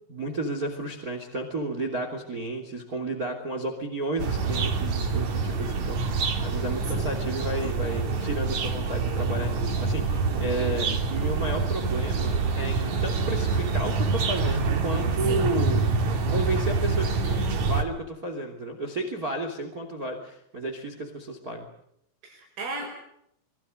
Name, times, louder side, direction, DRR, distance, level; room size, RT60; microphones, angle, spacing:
voice 1, 0.1-15.9 16.3-21.7, right 2 dB, 25° right, 5 dB, 2.6 m, -32 dB
sound 1, 4.2-17.8, right 4 dB, 45° right, 3.0 m, -26 dB
voice 2, 15.2-15.5 22.2-22.9, right 2 dB, 80° right, 0 dB, 8.1 m, -34 dB
26.5 x 22.5 x 6.6 m, 0.75 s
omnidirectional pair, 5.6 m